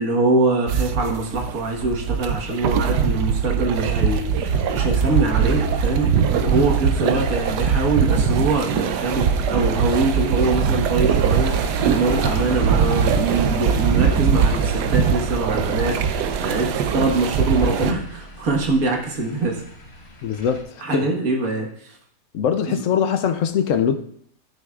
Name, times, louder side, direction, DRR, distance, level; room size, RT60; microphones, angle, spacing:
voice 1, 0.0-19.6 20.8-22.0 22.7-22.8, right 3 dB, 60° right, 1.8 m, -23 dB
sound 1, 0.7-17.9, right 6 dB, 80° right, 1.2 m, -21 dB
sound 2, 4.5-20.6, left 1 dB, 40° left, 1.5 m, -39 dB
voice 2, 20.2-21.1 22.3-23.9, left 8 dB, 60° left, 0.9 m, -22 dB
15.0 x 6.3 x 2.4 m
omnidirectional pair, 1.8 m